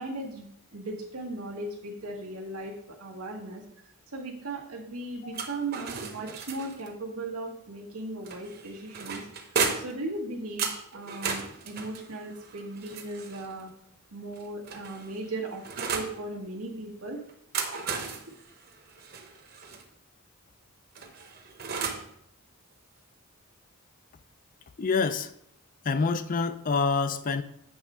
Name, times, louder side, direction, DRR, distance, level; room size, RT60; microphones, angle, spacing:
voice 1, 0.0-3.6 4.1-9.2 9.7-13.7 14.1-17.2, right 2 dB, 85° right, 0 dB, 1.6 m, -37 dB
sound 1, 5.3-6.9 8.3-10.0 10.6-13.5 14.3-16.2 17.3-19.8 21.0-22.1, right 5 dB, 45° right, 0.8 m, -35 dB
voice 2, 24.8-25.3 25.8-27.4, left 4 dB, 35° left, 12 dB, 0.4 m, -27 dB
7.9 x 3.6 x 5.5 m, 0.71 s
head